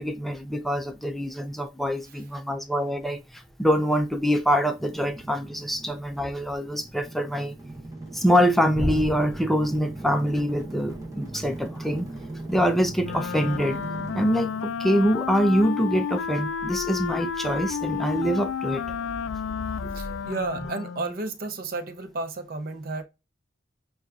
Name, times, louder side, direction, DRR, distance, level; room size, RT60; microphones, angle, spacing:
voice 1, 0.0-7.5 8.1-12.1 12.5-13.8 14.1-18.8 19.8-20.2, equal, ahead, 0.4 m, -25 dB
sound 1, 4.7-15.7, right 2 dB, 15° right, 0.9 m, -40 dB
Wind instrument woodwind instrument, 13.0-21.2, left 7 dB, 75° left, 0.3 m, -31 dB
voice 2, 19.9-23.0, right 3 dB, 45° right, 0.6 m, -32 dB
6.7 x 2.4 x 2.4 m
head